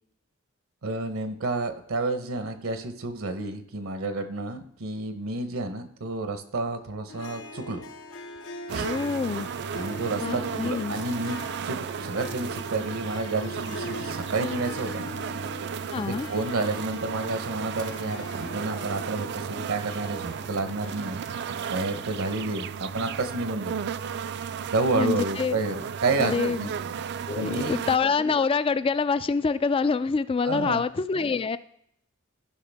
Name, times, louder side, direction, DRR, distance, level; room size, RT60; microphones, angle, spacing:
voice 1, 0.8-7.8 8.7-8.9 9.7-11.4 11.6-15.2 15.9-21.2 21.7-23.7 24.7-26.7 27.3-27.8 30.4-30.8, right 3 dB, 70° right, 9 dB, 0.8 m, -30 dB
Harp, 7.1-23.6, left 2 dB, 65° left, 0.8 m, -42 dB
sound 1, 8.7-28.0, right 7 dB, 55° right, 0.4 m, -34 dB
voice 2, 8.8-9.5 10.2-11.0 15.9-16.3 24.9-25.6 26.2-26.7 27.3-31.6, left 5 dB, 25° left, 15 dB, 0.3 m, -26 dB
14.5 x 5.5 x 3.4 m, 0.72 s
head